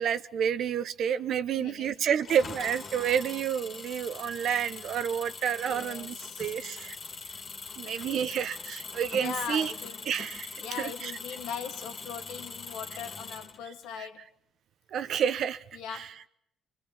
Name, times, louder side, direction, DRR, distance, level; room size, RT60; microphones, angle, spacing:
voice 1, 0.0-7.0 7.8-9.7 10.1-11.1 14.0-14.1 14.9-15.6 15.9-16.1, right 8 dB, 65° right, 1.1 m, -30 dB
voice 2, 1.5-2.0 5.6-6.7 7.8-8.3 9.1-10.1 10.6-14.3 15.7-16.3, left 8 dB, 80° left, 1.7 m, -40 dB
Engine, 2.2-13.9, left 4 dB, 45° left, 2.2 m, -42 dB
25.0 x 21.0 x 7.4 m
supercardioid pair, 75°, 0 cm